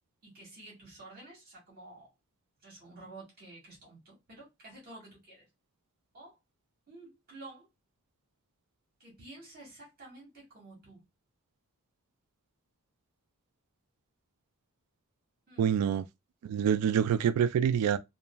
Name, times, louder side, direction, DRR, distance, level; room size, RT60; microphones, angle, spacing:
voice 1, 0.2-2.1 2.6-5.5 6.1-6.4 6.9-7.7 9.0-11.0 15.5-15.8, right 2 dB, 45° right, 1.6 m, -51 dB
voice 2, 15.6-16.0 16.4-18.0, right 8 dB, 90° right, 0.3 m, -26 dB
3.0 x 2.4 x 2.2 m
head